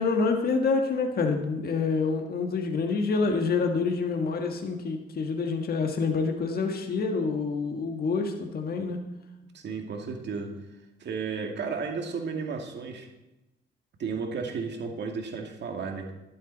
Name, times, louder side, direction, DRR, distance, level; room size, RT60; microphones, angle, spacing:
voice 1, 0.0-9.0, left 4 dB, 50° left, 3 dB, 1.6 m, -27 dB
voice 2, 9.5-10.6 11.0-13.1 14.0-16.1, right 5 dB, 60° right, 3 dB, 2.2 m, -33 dB
12.0 x 11.0 x 4.1 m, 1.0 s
cardioid pair, 90°, 20 cm